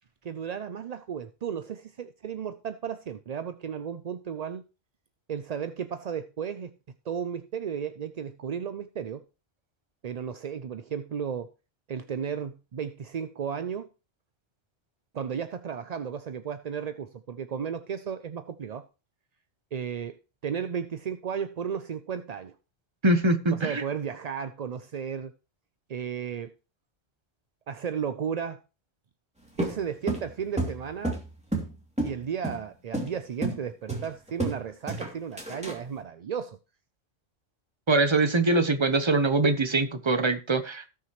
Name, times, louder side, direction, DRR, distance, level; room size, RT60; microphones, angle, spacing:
voice 1, 0.2-4.6 5.3-6.7 7.1-9.2 10.0-11.5 11.9-13.9 15.1-18.8 19.7-20.2 20.4-22.5 23.5-25.3 25.9-26.5 27.7-28.6 29.6-31.2 32.0-36.6 38.9-39.1, right 7 dB, 50° right, 0.5 m, -34 dB
voice 2, 23.0-23.8 37.9-40.9, right 2 dB, 25° right, 0.9 m, -23 dB
sound 1, 29.6-31.7 32.0-32.2 32.4-32.6 32.9-33.1 33.4-33.6 33.9-34.6 34.9-35.8, right 2 dB, 5° right, 2.7 m, -30 dB
17.5 x 6.1 x 3.1 m
omnidirectional pair, 1.2 m